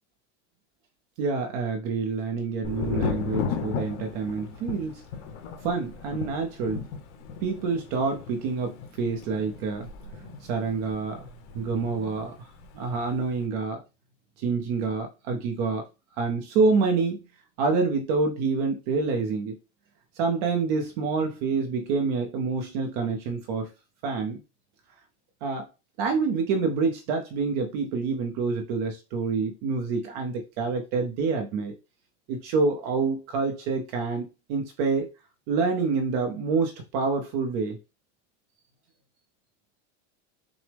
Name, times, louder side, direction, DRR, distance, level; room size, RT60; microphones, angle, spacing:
voice 1, 1.2-5.0 5.6-6.9 7.4-11.3 11.5-13.8 14.4-15.9 16.2-17.2 17.6-19.6 20.1-23.7 24.0-24.4 25.4-25.7 26.0-31.7 32.3-35.1 35.5-37.8, right 4 dB, 40° right, 0.5 m, -27 dB
Thunder, 2.6-12.3 12.5-13.3, left 6 dB, 70° left, 1.0 m, -35 dB
6.0 x 2.0 x 3.3 m
supercardioid pair, 170°, 35 cm